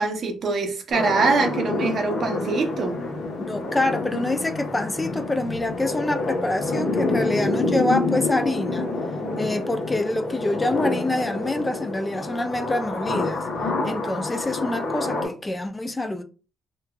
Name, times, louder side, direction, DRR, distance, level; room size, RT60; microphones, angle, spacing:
voice 1, 0.0-3.0, right 3 dB, 55° right, 0.6 m, -23 dB
sound 1, 0.9-15.3, left 2 dB, 55° left, 0.9 m, -27 dB
voice 2, 3.4-8.9 9.4-13.5 13.8-16.2, left 2 dB, 20° left, 0.3 m, -26 dB
3.0 x 2.3 x 2.2 m
cardioid pair, 90°, 0 cm